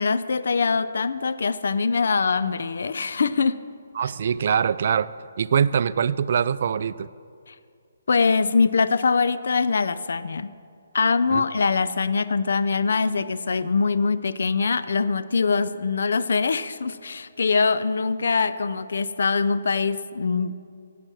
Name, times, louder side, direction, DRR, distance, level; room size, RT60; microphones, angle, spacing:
voice 1, 0.0-3.6 4.0-4.1 7.5-7.6 8.1-10.5 10.9-20.5, left 4 dB, 65° left, 13 dB, 0.5 m, -23 dB
voice 2, 4.0-5.1 5.4-7.1 11.3-11.4, right 7 dB, 55° right, 16 dB, 0.3 m, -23 dB
16.0 x 5.8 x 6.3 m, 2.3 s
figure-of-eight pair, 145°, 0 cm